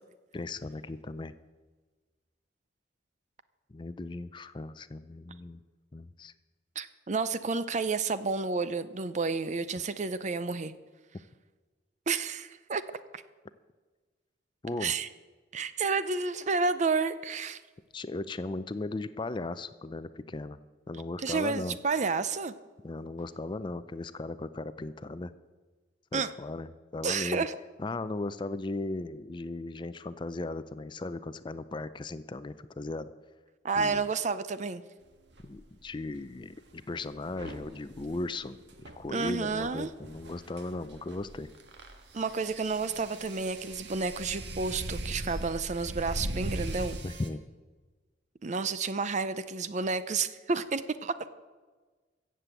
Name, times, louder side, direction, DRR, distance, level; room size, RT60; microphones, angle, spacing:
voice 1, 0.3-1.4 3.7-5.6 5.9-6.3 14.6-14.9 17.9-20.6 20.9-21.8 22.8-25.3 26.1-26.7 26.9-27.4 27.8-33.1 33.8-34.1 35.4-41.5 47.0-47.4, left 2 dB, 25° left, 13 dB, 0.4 m, -37 dB
voice 2, 6.8-10.7 12.1-12.8 13.1-13.2 14.8-15.1 15.5-17.6 21.2-22.5 26.1-26.3 27.0-27.5 33.6-34.8 39.1-39.9 42.1-47.0 48.4-51.3, right 4 dB, 40° right, 13 dB, 0.6 m, -30 dB
sound 1, 35.3-35.5 37.3-47.3, right 1 dB, 75° right, 1.5 m, -40 dB
14.5 x 7.6 x 8.2 m, 1.3 s
head